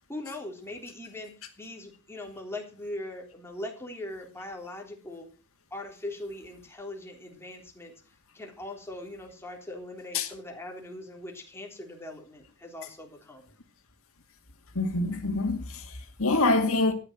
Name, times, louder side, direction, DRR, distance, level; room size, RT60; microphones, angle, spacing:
voice 1, 0.1-5.3 5.7-7.9 8.3-13.4, left 1 dB, 10° left, 3.5 m, -40 dB
voice 2, 14.7-16.9, left 2 dB, 65° left, 2.4 m, -26 dB
13.5 x 9.9 x 6.0 m
head